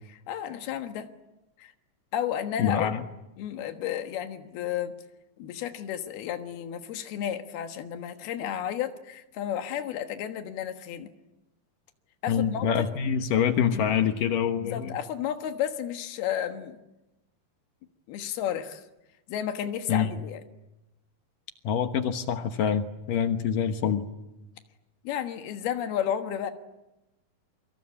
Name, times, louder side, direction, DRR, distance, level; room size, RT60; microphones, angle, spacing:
voice 1, 0.1-1.1 1.6-1.7 2.1-2.9 3.4-4.9 5.4-11.1 12.2-12.9 13.7-13.9 14.6-16.8 18.1-18.8 19.3-20.4 25.1-26.5, left 10 dB, 85° left, 6 dB, 3.4 m, -32 dB
voice 2, 2.6-3.0 12.3-15.0 19.9-20.1 21.6-24.1, left 8 dB, 65° left, 7 dB, 2.7 m, -26 dB
28.0 x 25.0 x 8.6 m, 0.97 s
omnidirectional pair, 4.4 m